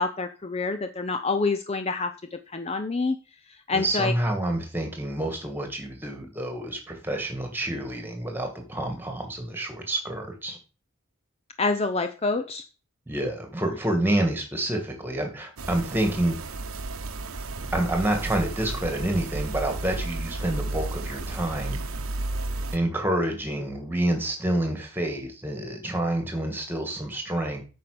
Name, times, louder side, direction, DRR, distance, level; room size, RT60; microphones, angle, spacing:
voice 1, 0.0-3.2 3.5-4.1 11.6-12.6, left 3 dB, 30° left, 7 dB, 0.6 m, -27 dB
voice 2, 3.7-10.6 13.1-16.5 17.7-21.8 22.7-27.6, right 1 dB, 10° right, 4 dB, 2.3 m, -28 dB
sound 1, 15.6-22.8, right 2 dB, 85° right, 0.9 m, -33 dB
8.9 x 5.5 x 6.8 m, 0.34 s
head